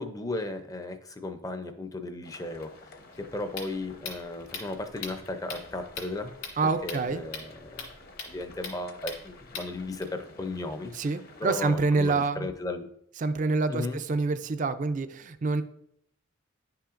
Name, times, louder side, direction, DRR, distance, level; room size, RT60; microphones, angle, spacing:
voice 1, 0.0-6.3 6.8-7.8 8.2-10.9 11.4-12.9 13.7-14.0, left 2 dB, 15° left, 8 dB, 0.5 m, -35 dB
sound 1, 2.2-11.5, left 3 dB, 45° left, 0.9 m, -52 dB
sound 2, 3.1-10.0, left 5 dB, 70° left, 2.1 m, -42 dB
voice 2, 6.6-7.2 10.9-12.5 13.2-15.6, right 3 dB, 35° right, 10 dB, 0.4 m, -27 dB
10.5 x 5.7 x 2.5 m, 0.72 s
head